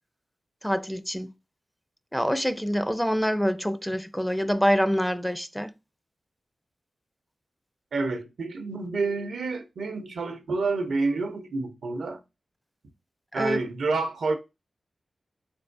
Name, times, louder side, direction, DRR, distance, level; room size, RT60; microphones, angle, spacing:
voice 1, 0.6-1.3 2.1-5.7 13.4-13.6, equal, 5° left, 0.4 m, -26 dB
voice 2, 7.9-12.2 13.3-14.4, right 3 dB, 85° right, 0.6 m, -28 dB
4.3 x 3.4 x 2.5 m
cardioid pair, 50°, 0 cm